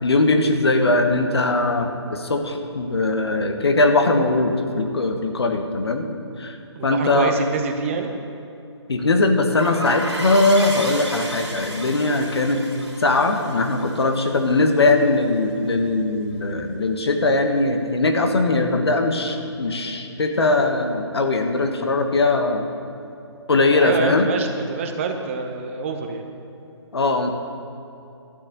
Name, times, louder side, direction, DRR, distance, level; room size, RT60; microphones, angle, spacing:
voice 1, 0.0-6.1 6.4-6.6 6.8-7.3 8.9-12.6 13.0-22.7 23.5-24.3 26.9-27.3, left 2 dB, 60° left, 5 dB, 1.4 m, -20 dB
voice 2, 6.7-8.1 23.8-26.2, right 5 dB, 25° right, 5 dB, 0.9 m, -27 dB
sound 1, 9.6-14.9, right 1 dB, 80° right, 2.9 m, -33 dB
12.0 x 6.9 x 9.0 m, 2.7 s
figure-of-eight pair, 145°, 15 cm